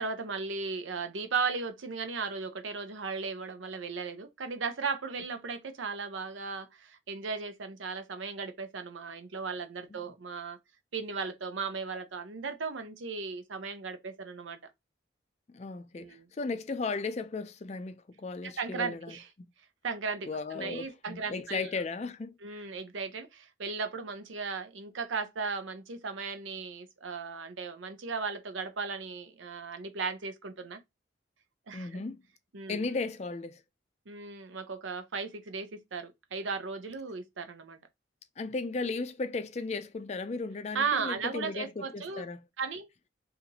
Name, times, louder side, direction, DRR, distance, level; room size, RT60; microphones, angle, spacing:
voice 1, 0.0-10.6 10.9-14.6 16.0-16.3 18.4-19.3 19.8-21.7 22.4-30.8 31.7-32.0 32.5-32.8 34.1-37.8 40.7-42.2 42.6-42.9, right 5 dB, 90° right, 0.7 m, -36 dB
voice 2, 15.5-19.1 20.3-22.7 31.7-32.2 32.7-33.6 38.4-42.4, left 3 dB, 35° left, 0.4 m, -36 dB
2.8 x 2.5 x 3.9 m
head